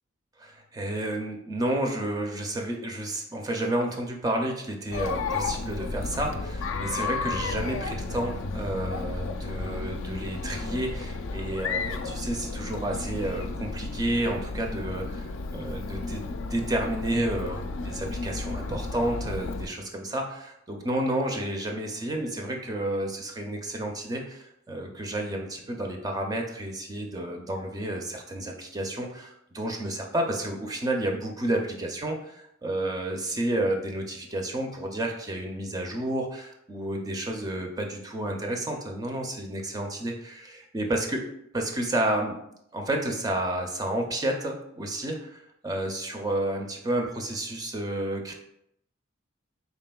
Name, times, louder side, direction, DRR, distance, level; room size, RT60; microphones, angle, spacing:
voice 1, 0.4-41.2 41.5-42.4 42.7-48.3, right 1 dB, 20° right, 2 dB, 0.4 m, -31 dB
Chatter, 4.9-19.7, left 3 dB, 75° left, 0.3 m, -33 dB
4.1 x 3.6 x 2.2 m, 0.75 s
head